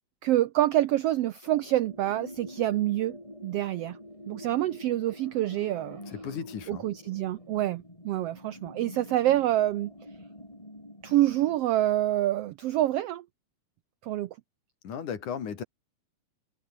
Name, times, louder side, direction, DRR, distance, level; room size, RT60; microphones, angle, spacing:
voice 1, 0.2-3.2 3.4-4.0 4.3-6.0 6.7-9.9 11.0-13.2 14.0-14.3, right 14 dB, 85° right, 1.3 m, -26 dB
sound 1, 1.4-11.6, left 1 dB, 10° left, 5.7 m, -46 dB
voice 2, 6.1-6.9 14.8-15.6, left 7 dB, 75° left, 4.5 m, -35 dB
omnidirectional pair, 3.6 m